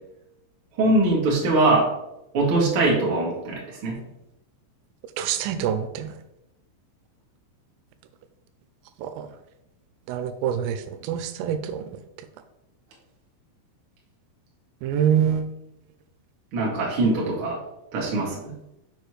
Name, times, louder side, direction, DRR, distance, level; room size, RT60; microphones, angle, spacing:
voice 1, 0.8-1.9 2.3-4.0 16.5-17.6 17.9-18.5, right 2 dB, 60° right, -4 dB, 1.4 m, -22 dB
voice 2, 5.2-6.1 9.0-9.3 10.1-12.0 14.8-15.5, right 9 dB, 85° right, 10 dB, 3.3 m, -25 dB
6.8 x 6.7 x 3.2 m, 0.88 s
omnidirectional pair, 5.8 m